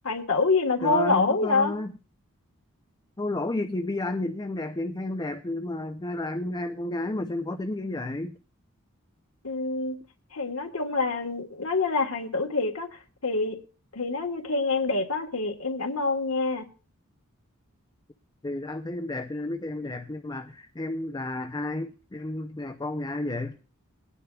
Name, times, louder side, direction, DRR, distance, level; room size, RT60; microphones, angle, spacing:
voice 1, 0.0-1.8 9.4-10.0 10.3-13.6 13.9-16.7, left 3 dB, 75° left, 3 dB, 1.5 m, -26 dB
voice 2, 0.8-1.9 3.2-8.4 18.4-23.6, left 2 dB, 20° left, 6 dB, 0.6 m, -31 dB
21.0 x 9.9 x 2.4 m, 0.37 s
head